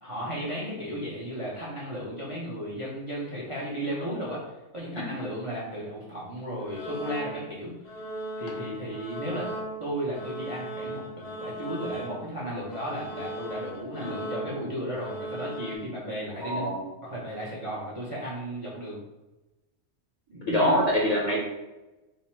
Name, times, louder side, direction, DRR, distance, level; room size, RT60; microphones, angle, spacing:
voice 1, 0.0-4.4 4.7-7.7 8.4-9.5 9.8-16.7 17.0-19.0 20.3-20.8, equal, 35° right, -5 dB, 0.6 m, -34 dB
sound 1, 6.6-7.6 7.8-12.4 12.7-15.8, right 1 dB, 85° left, 1.1 m, -37 dB
voice 2, 16.4-16.8 20.4-21.4, left 1 dB, 40° left, -5 dB, 0.8 m, -25 dB
3.7 x 2.0 x 4.3 m, 1.0 s
omnidirectional pair, 1.3 m